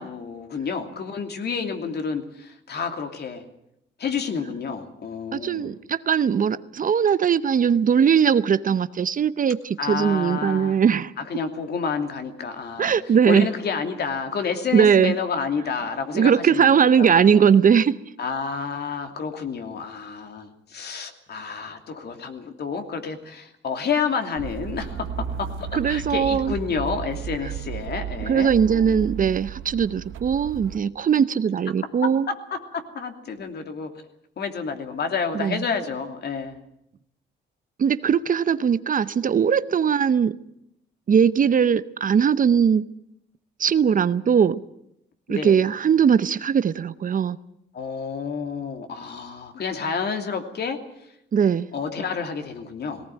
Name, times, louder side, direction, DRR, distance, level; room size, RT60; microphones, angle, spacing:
voice 1, 0.0-3.4 4.0-5.8 9.8-10.8 11.2-12.9 13.3-17.4 18.2-25.1 25.4-29.1 32.3-33.9 34.4-36.6 45.3-45.6 47.7-50.8 51.7-53.1, left 5 dB, 55° left, 2.8 m, -30 dB
voice 2, 5.3-11.1 12.8-13.5 14.7-15.2 16.1-17.9 25.7-26.5 28.3-32.3 35.3-35.6 37.8-40.4 41.1-42.9 43.6-44.6 45.3-47.4 51.3-51.7, right 7 dB, 45° right, 0.8 m, -20 dB
sound 1, 24.4-30.8, right 8 dB, 80° right, 1.0 m, -34 dB
18.5 x 18.5 x 9.2 m
cardioid pair, 90°, 20 cm